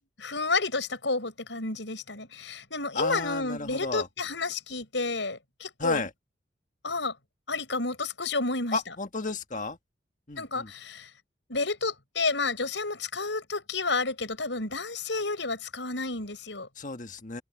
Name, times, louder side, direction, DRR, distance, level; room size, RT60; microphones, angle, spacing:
voice 1, 0.2-6.0 6.8-7.1 7.5-8.8 10.4-11.1 11.5-16.7, left 3 dB, 75° left, 6.1 m, -30 dB
voice 2, 2.9-4.1 5.8-6.1 8.7-9.8 10.3-10.7 16.7-17.4, left 3 dB, 40° left, 1.6 m, -33 dB
head